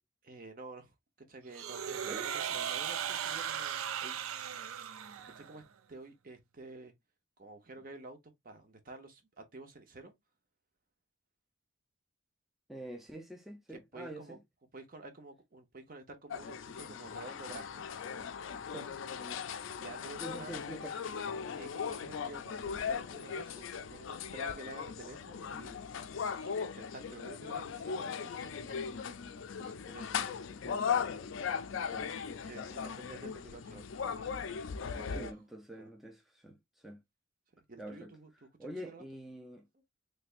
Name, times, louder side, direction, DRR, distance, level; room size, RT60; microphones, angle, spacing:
voice 1, 0.2-0.9 1.3-2.4 2.7-4.2 5.4-5.6 5.9-6.9 7.4-8.2 8.4-10.1 13.7-14.4 14.7-17.9 18.7-18.8 19.1-19.2 19.8-20.5 21.6-25.8 26.4-29.2 29.6-30.5 31.9-34.3 35.0-35.4 35.8-35.9 37.7-38.3 38.6-39.1, right 2 dB, 45° right, 0.8 m, -50 dB
sound 1, 1.5-5.6, right 9 dB, 90° right, 0.4 m, -37 dB
voice 2, 1.9-2.7 12.7-14.4 18.7-18.9 20.2-21.0 30.6-30.9 31.7-32.1 35.1-37.0 37.8-38.1 38.6-39.6, right 1 dB, ahead, 0.4 m, -46 dB
sound 2, 16.3-35.3, left 6 dB, 70° left, 0.4 m, -38 dB
3.3 x 3.3 x 2.4 m
head